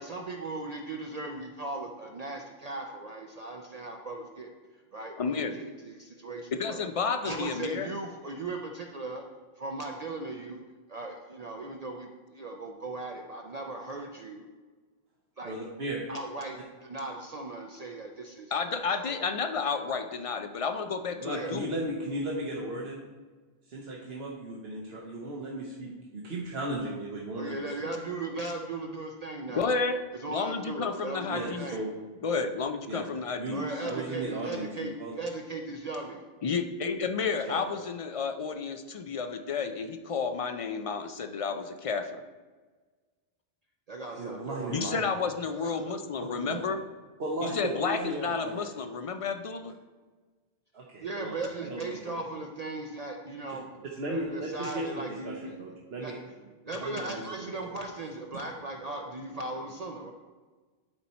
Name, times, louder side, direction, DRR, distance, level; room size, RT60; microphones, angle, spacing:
voice 1, 0.0-4.5 4.9-6.8 7.2-9.3 9.6-10.6 10.9-14.5 15.4-15.5 16.1-19.2 21.3-21.6 27.3-29.7 30.2-31.8 33.5-36.2 43.9-44.9 45.5-46.3 51.0-55.6 55.9-56.2 56.6-60.1, right 2 dB, 45° right, 2 dB, 0.6 m, -38 dB
voice 2, 5.2-5.6 6.5-7.9 18.5-21.7 29.5-30.0 30.3-31.7 32.2-33.7 36.4-42.2 44.7-46.8 47.4-49.7, left 5 dB, 50° left, 8 dB, 0.4 m, -31 dB
voice 3, 15.4-16.0 21.1-23.0 23.7-27.9 31.3-31.9 32.9-35.2 37.3-37.6 44.0-45.1 46.5-46.6 47.2-48.6 50.7-52.2 53.5-53.6 54.0-56.1 56.8-57.5, right 1 dB, 70° right, -3 dB, 1.2 m, -36 dB
11.5 x 4.2 x 4.3 m, 1.3 s
omnidirectional pair, 1.1 m